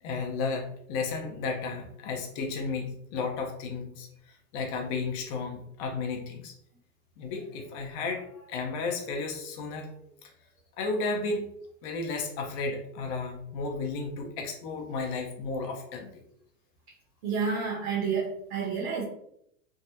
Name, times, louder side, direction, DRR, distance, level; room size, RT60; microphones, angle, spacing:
voice 1, 0.0-6.6 7.2-9.9 10.2-10.3 10.8-11.5 11.8-16.2, left 4 dB, 45° left, 2 dB, 0.7 m, -33 dB
voice 2, 17.2-19.0, right 5 dB, 55° right, -4 dB, 1.2 m, -29 dB
3.5 x 2.0 x 2.8 m, 0.72 s
hypercardioid pair, 115°, 40 cm